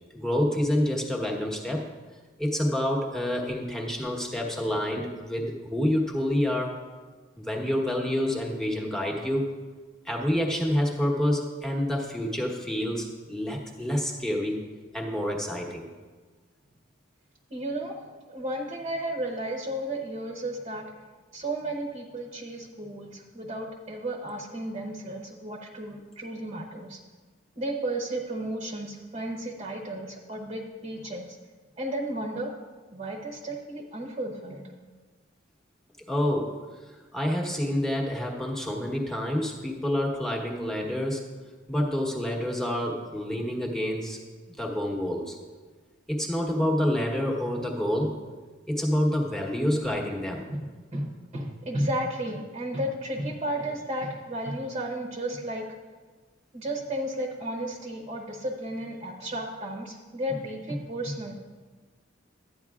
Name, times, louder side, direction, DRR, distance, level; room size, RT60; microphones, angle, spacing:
voice 1, 0.1-1.9 2.4-6.8 7.4-9.5 10.0-14.6 14.9-15.9 36.1-36.6 37.1-41.2 41.7-44.2 44.6-45.3 46.1-48.1 48.7-50.5, left 1 dB, 5° left, -1 dB, 1.0 m, -28 dB
voice 2, 17.5-18.0 18.3-20.9 21.3-27.0 27.6-31.4 31.8-32.5 32.9-34.6 50.5-50.7 50.9-55.6 56.5-61.4, right 1 dB, 30° right, 0 dB, 0.9 m, -33 dB
12.0 x 9.2 x 2.4 m, 1.4 s
head